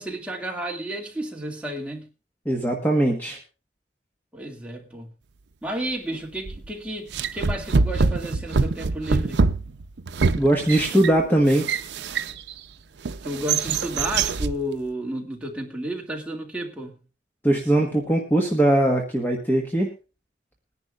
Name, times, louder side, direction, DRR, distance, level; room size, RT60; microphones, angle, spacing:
voice 1, 0.0-2.1 4.3-5.1 5.6-9.4 13.2-17.0, right 1 dB, 5° right, 2.1 m, -32 dB
voice 2, 2.4-3.4 10.4-11.6 17.4-19.9, right 1 dB, 10° left, 1.3 m, -20 dB
sound 1, 6.5-6.7 7.1-12.6 13.0-14.6, right 4 dB, 75° right, 0.6 m, -24 dB
21.5 x 10.5 x 2.4 m
head